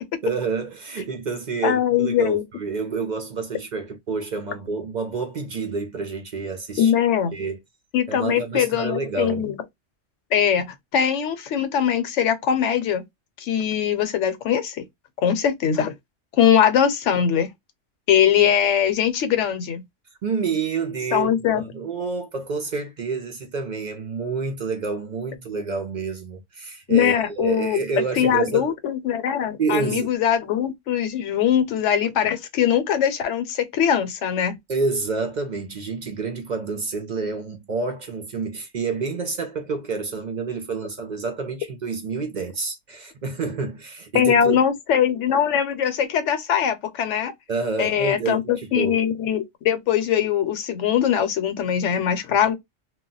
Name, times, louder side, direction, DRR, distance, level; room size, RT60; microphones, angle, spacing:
voice 1, 0.2-6.9 7.3-7.6 8.1-9.4 20.2-28.7 29.6-30.2 34.7-44.6 47.5-49.0, right 4 dB, 55° right, 0.5 m, -28 dB
voice 2, 1.6-2.4 6.8-7.3 7.9-9.6 10.3-13.0 13.4-14.8 15.2-15.9 16.4-17.5 18.1-19.8 21.1-21.6 26.9-34.6 44.1-47.3 47.8-52.5, left 9 dB, 75° left, 1.0 m, -21 dB
2.3 x 2.1 x 3.8 m
omnidirectional pair, 1.3 m